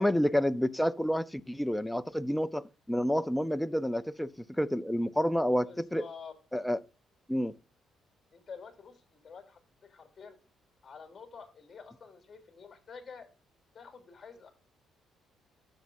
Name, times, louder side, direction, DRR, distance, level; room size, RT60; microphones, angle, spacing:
voice 1, 0.0-4.3 4.6-6.0 6.5-6.8 7.3-7.5, equal, 5° left, 0.5 m, -29 dB
voice 2, 5.5-6.3 8.3-10.4 10.8-13.3 13.7-14.5, left 5 dB, 30° left, 3.1 m, -48 dB
13.0 x 7.4 x 2.6 m
cardioid pair, 125°, 0 cm